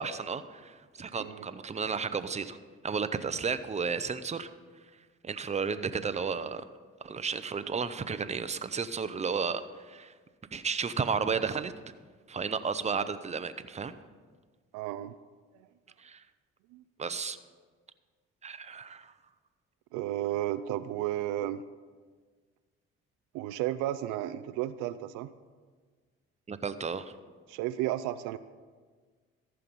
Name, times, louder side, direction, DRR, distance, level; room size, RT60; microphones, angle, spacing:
voice 1, 0.0-2.6 2.8-4.5 5.2-6.6 7.0-10.1 10.5-11.7 12.3-13.9 16.0-16.2 17.0-17.4 18.4-19.1 26.5-27.1, right 5 dB, 20° right, 12 dB, 0.6 m, -33 dB
voice 2, 14.7-15.1 15.6-15.7 16.7-16.8 19.9-21.6 23.3-25.3 27.5-28.4, right 13 dB, 80° right, 12 dB, 0.4 m, -33 dB
14.5 x 5.7 x 5.3 m, 1.5 s
hypercardioid pair, 55°, 30 cm